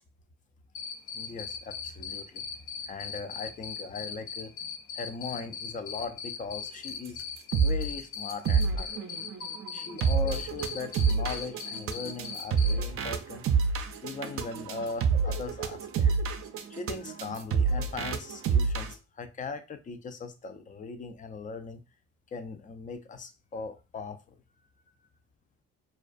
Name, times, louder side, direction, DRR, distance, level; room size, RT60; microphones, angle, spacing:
Cricket, 0.7-12.7, left 7 dB, 85° left, 0.6 m, -38 dB
voice 1, 1.1-2.4 2.8-7.2 7.6-9.1 9.7-13.4 14.0-16.2 16.7-21.8 22.3-24.4, left 4 dB, 25° left, 0.3 m, -39 dB
sound 1, 7.1-7.2 7.4-7.9 8.3-18.9, right 5 dB, 50° right, 0.4 m, -27 dB
2.3 x 2.3 x 2.4 m
cardioid pair, 90°, 30 cm